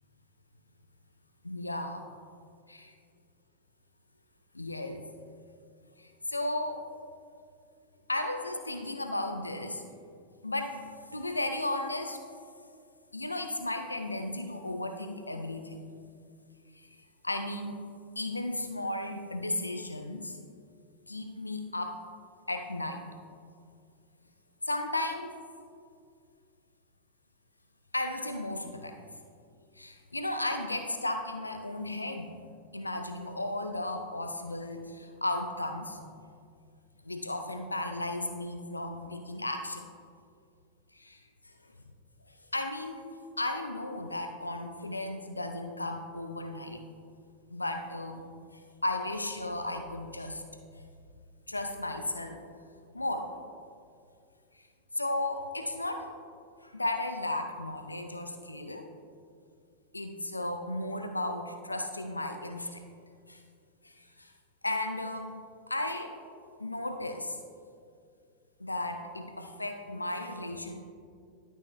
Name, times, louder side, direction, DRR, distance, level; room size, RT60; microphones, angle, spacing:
voice 1, 1.4-2.0 4.6-5.0 6.0-6.8 8.1-9.9 10.4-12.2 13.1-15.8 16.7-16.9 17.2-17.8 18.2-20.4 21.1-22.0 22.5-23.0 24.7-25.3 27.9-29.0 29.8-32.3 32.7-36.0 37.0-39.9 40.9-41.5 42.5-43.0 43.4-46.8 47.5-48.2 48.5-50.4 51.5-52.4 52.9-53.3 54.5-54.6 54.9-56.1 56.6-58.9 59.9-62.8 63.3-63.4 63.8-64.3 64.6-65.4 65.7-66.1 66.6-67.4 68.6-70.8, left 1 dB, 85° left, 5 dB, 0.5 m, -34 dB
12.0 x 5.5 x 3.1 m, 2.3 s
figure-of-eight pair, 90°, 0 cm